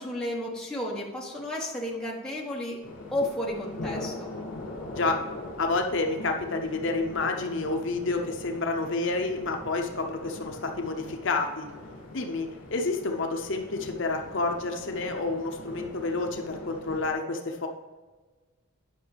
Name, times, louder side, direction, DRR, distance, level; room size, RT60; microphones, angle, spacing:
voice 1, 0.0-2.8 3.1-4.3, left 1 dB, 5° left, -4 dB, 1.3 m, -32 dB
sound 1, 2.8-17.1, left 2 dB, 80° left, 2.3 m, -41 dB
voice 2, 5.6-11.7 12.1-17.7, left 3 dB, 55° left, 3 dB, 0.7 m, -29 dB
9.9 x 5.9 x 3.4 m, 1.3 s
head